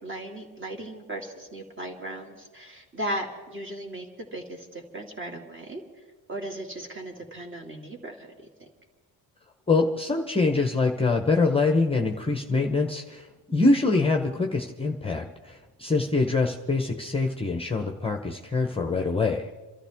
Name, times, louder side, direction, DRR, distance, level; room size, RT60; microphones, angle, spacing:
voice 1, 0.0-5.8 6.3-8.3 8.6-8.7, right 1 dB, 25° right, 2 dB, 2.4 m, -36 dB
voice 2, 9.7-19.5, left 3 dB, 10° left, 3 dB, 0.9 m, -24 dB
28.5 x 13.0 x 3.6 m, 1.3 s
cardioid pair, 120°, 46 cm